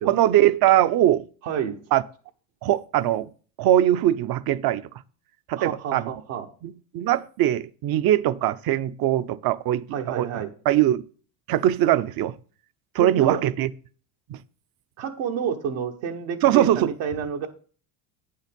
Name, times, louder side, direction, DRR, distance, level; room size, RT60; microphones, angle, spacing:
voice 1, 0.1-1.2 1.9-2.0 2.6-3.3 3.6-4.8 5.5-6.1 6.6-9.9 10.1-11.0 11.5-12.3 12.9-13.7 14.3-14.4 16.4-16.9, right 12 dB, 50° right, 0.6 m, -21 dB
voice 2, 1.4-1.8 5.6-6.5 9.9-10.5 13.0-13.4 15.0-17.5, right 7 dB, 75° right, 1.4 m, -29 dB
8.7 x 5.6 x 5.1 m
supercardioid pair, 105°, 49 cm